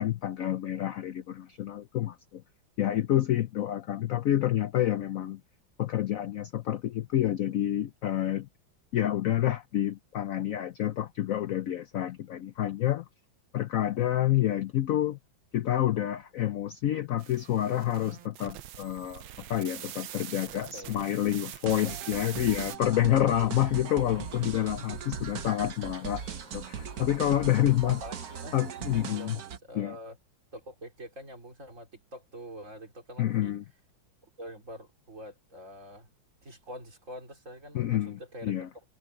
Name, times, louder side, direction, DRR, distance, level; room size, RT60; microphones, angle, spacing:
voice 1, 0.0-2.4 2.8-5.4 5.8-8.5 8.9-13.0 13.5-15.2 15.5-19.2 19.5-26.2 26.5-28.0 28.5-29.4 29.7-30.0 33.2-33.6 37.7-38.7, left 12 dB, 80° left, 0.7 m, -28 dB
sound 1, 17.2-22.8, right 12 dB, 90° right, 1.7 m, -43 dB
voice 2, 20.5-21.0 21.7-21.9 22.2-22.4 24.8-25.2 27.8-28.6 28.9-30.2 30.5-33.5 34.4-36.1 36.4-38.5, equal, 40° right, 3.9 m, -45 dB
sound 2, 21.6-29.6, right 7 dB, 55° right, 1.4 m, -39 dB
Chirp tweet, 23.3-29.3, left 1 dB, 20° left, 8.4 m, -55 dB
omnidirectional pair, 2.1 m